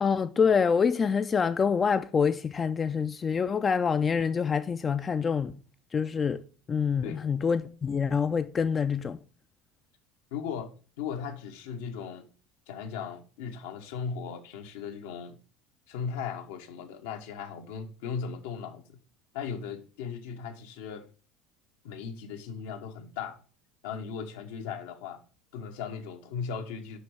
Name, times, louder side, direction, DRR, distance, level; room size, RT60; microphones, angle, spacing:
voice 1, 0.0-5.5 5.9-6.4 6.7-9.2, left 6 dB, 30° left, 0.4 m, -26 dB
voice 2, 10.3-12.3 12.7-15.4 15.9-19.0 19.3-21.1 21.8-23.4 23.8-25.2 25.5-27.0, left 6 dB, 70° left, 0.9 m, -37 dB
6.5 x 5.2 x 4.6 m
hypercardioid pair, 70°, 0 cm